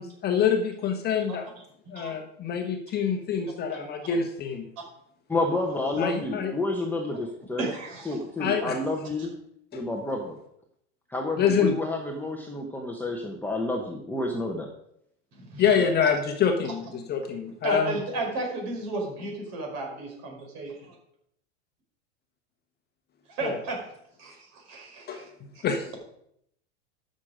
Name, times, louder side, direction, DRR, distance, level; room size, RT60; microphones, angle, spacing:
voice 1, 0.0-1.5 1.9-4.7 6.0-6.5 8.4-8.8 9.7-9.9 11.4-11.8 15.6-18.0 23.4-23.6 25.1-25.2 25.6-25.9, left 7 dB, 25° left, 4 dB, 1.2 m, -26 dB
voice 2, 5.3-7.6 8.1-9.3 9.7-10.4 11.1-14.7, left 2 dB, 5° left, 1 dB, 1.0 m, -29 dB
voice 3, 7.6-8.3 15.5-15.8 16.9-17.1 17.6-20.9 23.3-23.9 24.2-25.3 25.5-25.6, right 2 dB, 45° right, 1 dB, 5.0 m, -34 dB
13.0 x 6.6 x 5.1 m, 0.73 s
supercardioid pair, 135°, 36 cm